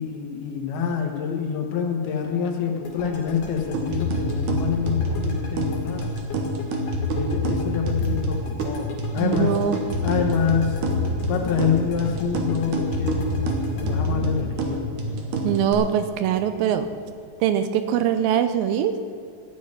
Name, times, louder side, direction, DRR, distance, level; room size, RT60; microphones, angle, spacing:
voice 1, 0.0-6.1 7.1-9.6 10.0-10.8 11.3-14.8, left 7 dB, 90° left, 3 dB, 3.4 m, -26 dB
sound 1, 2.9-15.6, left 3 dB, 60° left, 3.6 m, -39 dB
sound 2, 3.7-15.7, equal, 60° right, 2.6 m, -26 dB
voice 2, 9.2-9.8 15.4-16.9 17.4-18.9, right 9 dB, 80° right, 10 dB, 2.4 m, -22 dB
Rain, 10.3-17.4, equal, 5° left, 3.1 m, -42 dB
14.5 x 6.5 x 9.9 m, 2.4 s
omnidirectional pair, 4.3 m